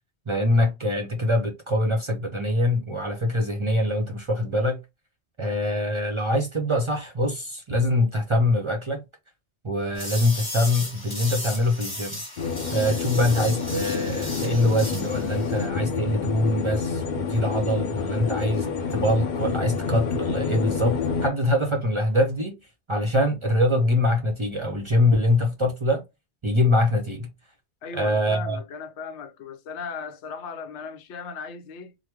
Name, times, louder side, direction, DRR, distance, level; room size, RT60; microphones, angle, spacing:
voice 1, 0.3-4.8 5.4-9.0 9.6-12.2 12.7-18.7 18.9-22.6 22.9-26.0 26.4-27.3 27.9-28.6, left 1 dB, 35° right, 0.5 m, -24 dB
sound 1, 9.9-15.6, left 1 dB, 20° left, 1.4 m, -36 dB
sound 2, 12.4-21.3, left 5 dB, 55° left, 0.6 m, -28 dB
voice 2, 27.8-32.0, left 5 dB, 90° left, 0.9 m, -37 dB
3.0 x 2.0 x 3.3 m
omnidirectional pair, 1.1 m